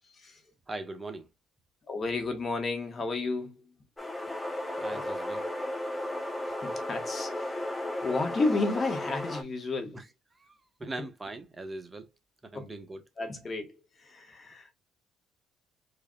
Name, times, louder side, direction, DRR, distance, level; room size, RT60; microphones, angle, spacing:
voice 1, 0.7-1.3 4.8-5.5 9.9-10.0 10.4-12.1 12.4-13.0, right 2 dB, 25° right, 0.8 m, -40 dB
voice 2, 1.9-3.6 4.9-5.0 6.6-7.7 8.0-10.0 12.5-12.7 13.2-14.7, left 3 dB, 40° left, 1.1 m, -32 dB
sound 1, 4.0-9.4, left 1 dB, 15° left, 0.9 m, -34 dB
4.8 x 2.6 x 2.3 m
supercardioid pair, 70°, 0 cm